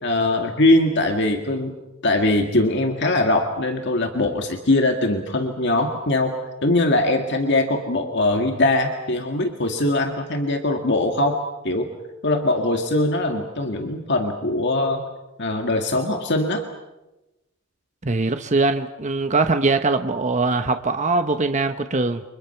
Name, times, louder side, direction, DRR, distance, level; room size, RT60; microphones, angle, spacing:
voice 1, 0.0-1.7 2.0-11.9 12.2-15.0 15.4-16.6, left 2 dB, 55° left, 4 dB, 2.0 m, -21 dB
voice 2, 18.0-22.2, right 3 dB, 35° right, 8 dB, 1.0 m, -21 dB
30.0 x 25.0 x 5.8 m, 1.0 s
head